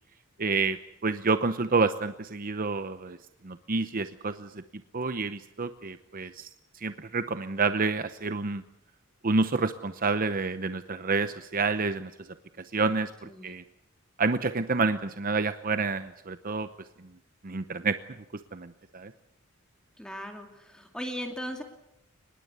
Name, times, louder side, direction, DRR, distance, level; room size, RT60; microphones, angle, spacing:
voice 1, 0.4-0.8 1.0-3.2 3.4-4.6 4.9-8.6 9.2-12.1 12.6-13.6 14.2-16.7 17.4-18.0 18.5-19.1, right 4 dB, 45° right, 10 dB, 0.8 m, -28 dB
voice 2, 13.2-13.6 20.0-21.6, equal, 5° left, 3 dB, 2.4 m, -38 dB
24.0 x 20.5 x 8.2 m, 0.83 s
head